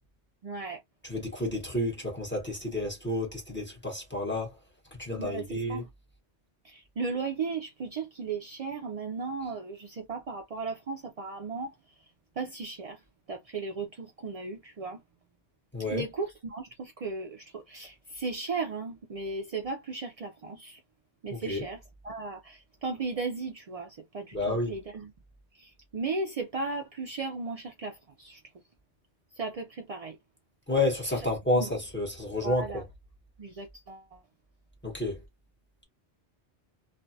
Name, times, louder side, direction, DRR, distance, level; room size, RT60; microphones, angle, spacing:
voice 1, 0.4-0.8 5.2-5.9 6.6-11.7 12.4-13.0 13.3-15.0 15.9-20.8 21.2-25.1 25.5-28.4 29.4-30.2 31.5-31.7 32.4-32.8 33.4-34.2, right 4 dB, 70° right, 0.3 m, -36 dB
voice 2, 1.0-4.6 5.0-5.8 15.7-16.0 21.3-21.6 24.3-24.7 30.7-32.8 34.8-35.2, left 1 dB, 10° left, 1.0 m, -30 dB
2.5 x 2.2 x 2.6 m
omnidirectional pair, 1.2 m